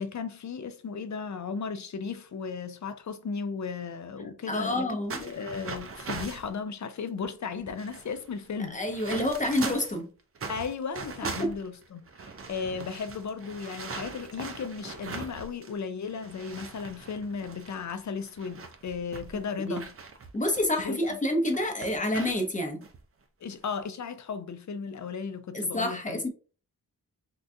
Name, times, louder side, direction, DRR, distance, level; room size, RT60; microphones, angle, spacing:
voice 1, 0.0-8.8 10.5-19.9 20.8-21.2 23.4-26.2, left 5 dB, 50° left, 0.5 m, -35 dB
voice 2, 4.5-5.2 8.7-10.1 11.4-11.5 19.6-19.8 20.3-22.8 25.5-26.3, left 1 dB, 20° left, 0.7 m, -28 dB
sound 1, 5.1-6.5 7.2-7.3 7.6-10.0 10.3-15.8 16.1-21.1 21.5-22.4 22.8-23.0 23.5-23.8, right 4 dB, 35° right, 0.5 m, -41 dB
3.8 x 2.3 x 2.6 m
wide cardioid pair, 125°, 39 cm